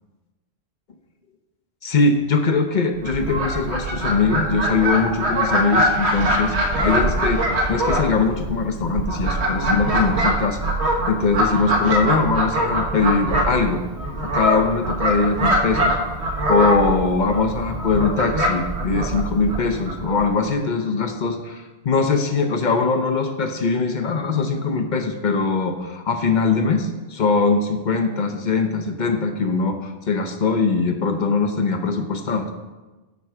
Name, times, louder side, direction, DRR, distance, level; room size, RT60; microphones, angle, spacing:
voice 1, 1.8-6.5 6.8-7.4 7.7-10.6 11.1-13.8 14.2-15.9 16.3-32.5, left 4 dB, 50° left, 6 dB, 0.9 m, -21 dB
Fowl, 3.0-20.3, right 1 dB, 85° right, 1.5 m, -23 dB
9.5 x 4.6 x 6.0 m, 1.2 s
omnidirectional pair, 1.1 m